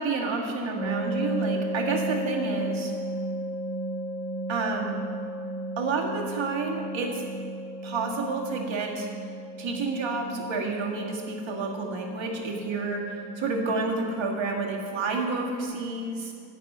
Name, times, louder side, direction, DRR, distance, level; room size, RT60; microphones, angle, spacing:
voice 1, 0.0-2.9 4.5-5.0 5.8-7.2 7.8-9.1 9.6-16.3, right 3 dB, 80° right, 0 dB, 1.7 m, -30 dB
sound 1, 0.7-15.6, right 1 dB, 10° right, 3.0 m, -35 dB
11.0 x 5.5 x 8.4 m, 2.3 s
cardioid pair, 65°, 45 cm